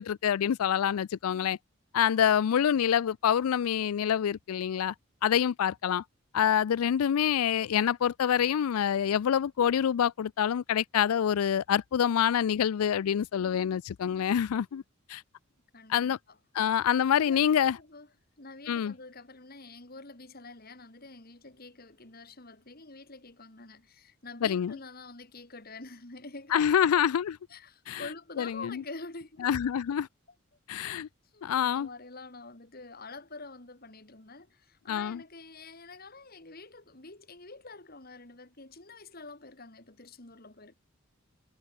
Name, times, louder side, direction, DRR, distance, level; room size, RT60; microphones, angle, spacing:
voice 1, 0.0-1.6 1.9-4.9 5.2-6.0 6.3-14.8 15.1-15.2 15.9-16.2 16.5-17.8 18.7-18.9 24.4-24.8 26.5-27.4 27.9-28.0 28.4-28.8 29.4-30.1 30.7-31.1 31.4-31.9 34.9-35.2, left 9 dB, 85° left, 0.4 m, -26 dB
voice 2, 15.7-16.4 17.1-18.1 18.4-26.7 27.5-29.5 31.3-40.7, left 3 dB, 45° left, 2.7 m, -47 dB
head